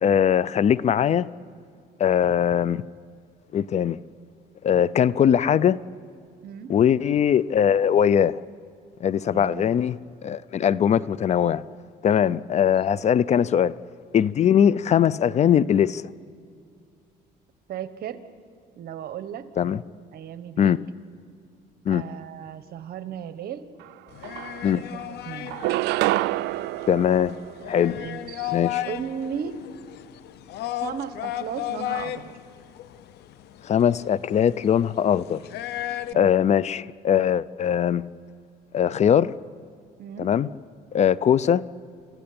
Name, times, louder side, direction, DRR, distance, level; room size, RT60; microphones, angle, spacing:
voice 1, 0.0-1.3 2.0-2.8 3.5-4.0 4.6-5.8 6.7-8.4 9.0-10.0 10.2-11.6 12.0-13.7 14.1-16.0 19.6-19.8 20.6-20.8 21.9-22.0 24.6-24.8 26.9-27.4 27.7-28.0 28.5-28.8 33.6-35.4 36.1-38.1 38.7-39.3 40.2-40.5 40.9-41.7, left 9 dB, 40° left, 19 dB, 0.5 m, -21 dB
voice 2, 9.2-9.7 12.3-12.7 17.7-18.2 18.8-19.4 20.1-20.8 21.9-23.8 24.7-25.5 27.9-28.6 28.8-29.6 30.8-32.3 36.1-36.3 40.0-40.3, right 8 dB, 65° right, 11 dB, 1.4 m, -36 dB
sound 1, 23.8-23.9 24.2-25.0 25.5-28.1, right 17 dB, 80° right, 0.4 m, -27 dB
sound 2, 24.1-36.1, left 13 dB, 75° left, 0.9 m, -35 dB
29.0 x 14.5 x 8.7 m, 2.4 s
cardioid pair, 110°, 17 cm